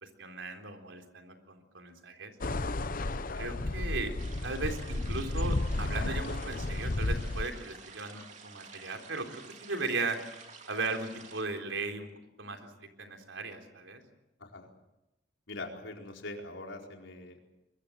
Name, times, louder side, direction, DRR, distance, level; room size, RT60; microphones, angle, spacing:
voice 1, 0.0-2.3 3.4-4.1 4.4-10.2 10.7-12.1 12.4-14.0, right 3 dB, 90° right, 4 dB, 3.9 m, -37 dB
sound 1, 2.4-7.5, left 2 dB, 50° left, 0.9 m, -32 dB
sound 2, 4.2-11.4, right 5 dB, 40° right, 2.9 m, -51 dB
voice 2, 15.5-17.4, left 2 dB, 80° left, 1 dB, 4.6 m, -43 dB
23.5 x 22.5 x 7.8 m, 0.91 s
head